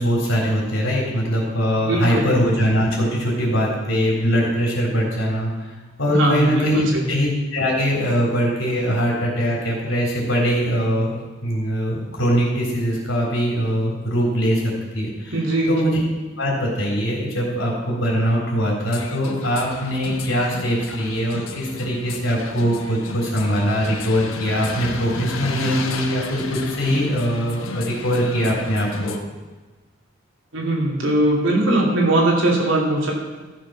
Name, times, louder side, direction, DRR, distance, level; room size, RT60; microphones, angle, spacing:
voice 1, 0.0-5.5 6.0-11.1 11.4-14.6 14.9-15.4 15.6-16.0 16.4-29.1, equal, 70° left, -3 dB, 3.8 m, -22 dB
voice 2, 1.8-2.3 6.1-7.1 15.3-15.7 30.5-33.1, right 1 dB, 70° right, -2 dB, 2.8 m, -20 dB
sound 1, 18.9-29.2, left 3 dB, 85° left, 1.0 m, -33 dB
14.0 x 6.7 x 5.9 m, 1.2 s
head